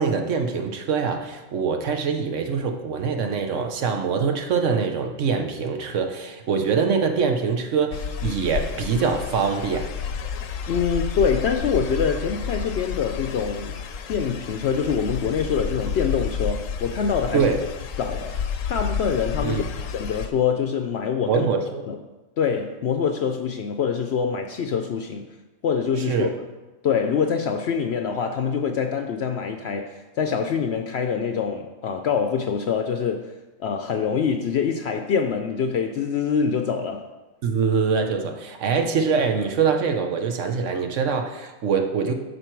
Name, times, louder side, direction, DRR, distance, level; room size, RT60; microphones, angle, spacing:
voice 1, 0.0-9.9 17.3-17.6 19.4-19.7 21.2-21.8 26.1-26.3 37.4-42.1, right 5 dB, 75° right, 5 dB, 1.2 m, -24 dB
sound 1, 7.9-20.3, left 7 dB, 85° left, 1.1 m, -30 dB
voice 2, 10.7-13.7 14.1-17.5 18.0-18.3 18.7-21.5 21.9-22.0 22.4-25.3 25.6-26.3 26.8-33.3 33.6-37.1, left 6 dB, 65° left, 5 dB, 0.8 m, -25 dB
12.0 x 4.5 x 4.5 m, 1.1 s
omnidirectional pair, 1.3 m